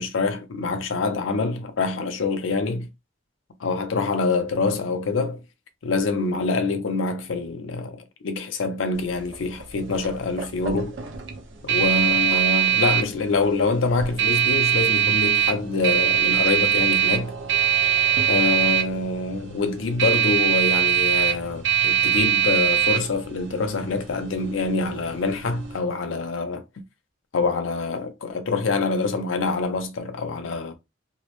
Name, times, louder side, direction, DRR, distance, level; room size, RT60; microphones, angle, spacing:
voice 1, 0.0-2.9 3.6-5.4 5.8-11.0 11.6-17.3 18.3-26.8 27.3-30.7, left 3 dB, 90° left, 0.5 m, -25 dB
sound 1, 9.0-25.8, right 10 dB, 75° right, 0.6 m, -23 dB
2.4 x 2.0 x 2.9 m
head